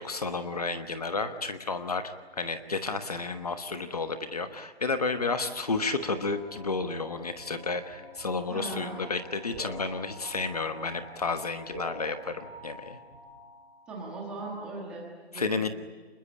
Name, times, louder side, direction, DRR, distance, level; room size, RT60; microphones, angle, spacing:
voice 1, 0.0-13.0 15.3-15.7, left 3 dB, 35° left, 9 dB, 1.2 m, -32 dB
sound 1, 5.2-13.9, left 1 dB, 15° left, 5.7 m, -46 dB
voice 2, 8.5-9.1 13.9-15.7, right 2 dB, 5° right, -3 dB, 1.4 m, -39 dB
27.0 x 21.5 x 9.9 m, 1.4 s
hypercardioid pair, 175°, 32 cm